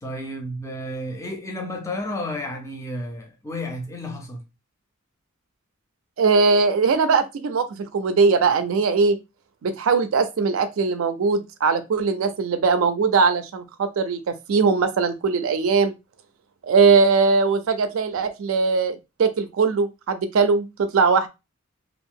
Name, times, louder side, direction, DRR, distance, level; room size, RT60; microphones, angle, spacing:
voice 1, 0.0-4.4, left 1 dB, 15° left, 0.5 m, -32 dB
voice 2, 6.2-9.2 9.6-15.9 16.6-21.3, right 4 dB, 75° right, 0.4 m, -20 dB
2.6 x 2.4 x 3.5 m
head